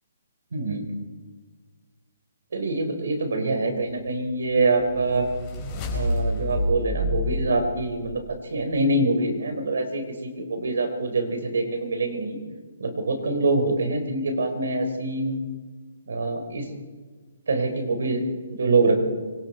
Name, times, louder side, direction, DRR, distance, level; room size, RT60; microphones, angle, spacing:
voice 1, 0.5-0.9 2.5-5.3 5.9-8.2 8.5-12.4 12.8-15.4 16.1-16.6 17.5-18.2 18.5-19.1, right 2 dB, 75° right, 5 dB, 4.3 m, -25 dB
sound 1, 4.3-8.5, left 1 dB, 15° left, 4.5 m, -29 dB
26.0 x 24.5 x 4.5 m, 1.4 s
hypercardioid pair, 175°, 0 cm